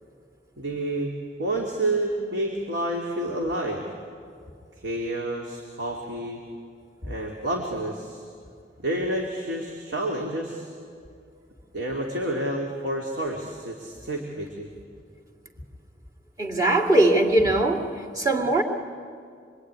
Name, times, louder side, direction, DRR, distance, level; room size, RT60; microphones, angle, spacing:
voice 1, 0.6-1.1 1.4-3.9 4.8-6.4 7.0-8.2 8.8-10.7 11.7-14.7, right 1 dB, 85° right, 0 dB, 2.7 m, -29 dB
voice 2, 16.4-17.9 18.1-18.6, right 2 dB, 20° right, -1 dB, 2.5 m, -20 dB
25.5 x 23.0 x 9.7 m, 2.3 s
head